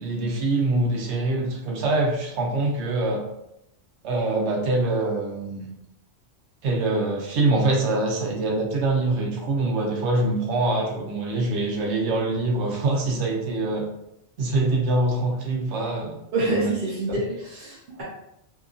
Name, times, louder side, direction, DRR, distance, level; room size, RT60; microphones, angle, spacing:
voice 1, 0.0-3.2 4.0-5.7 6.6-13.9 14.4-16.7 17.1-17.2, right 2 dB, 75° right, -1 dB, 0.9 m, -24 dB
voice 2, 16.3-18.0, right 2 dB, 50° right, -6 dB, 0.7 m, -27 dB
2.8 x 2.5 x 2.3 m, 0.81 s
omnidirectional pair, 1.2 m